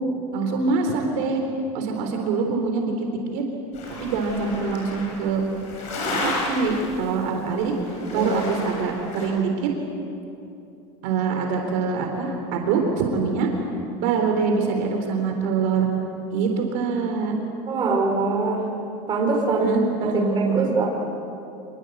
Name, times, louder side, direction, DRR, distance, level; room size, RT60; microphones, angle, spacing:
voice 1, 0.3-1.4 1.7-3.1 3.3-3.4 4.0-5.4 6.2-7.7 8.1-9.7 11.0-13.5 14.0-15.9 16.3-17.4 19.6-20.7, right 5 dB, 60° right, 3 dB, 3.9 m, -24 dB
sound 1, 3.7-7.4 7.8-9.3, left 2 dB, 50° left, 7.9 m, -32 dB
voice 2, 17.7-18.6 19.1-20.9, right 3 dB, 30° right, 0 dB, 4.6 m, -23 dB
26.0 x 22.0 x 8.1 m, 2.7 s
supercardioid pair, 155°, 16 cm